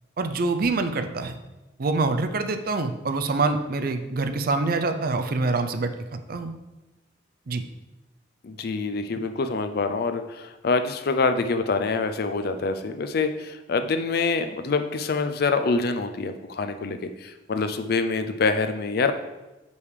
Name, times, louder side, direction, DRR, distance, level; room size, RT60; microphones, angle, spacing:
voice 1, 0.2-1.3 1.8-6.5 7.5-7.6, right 3 dB, 55° right, 8 dB, 0.5 m, -25 dB
voice 2, 8.4-19.1, left 4 dB, 55° left, 8 dB, 0.5 m, -26 dB
5.3 x 4.8 x 4.9 m, 1.0 s
head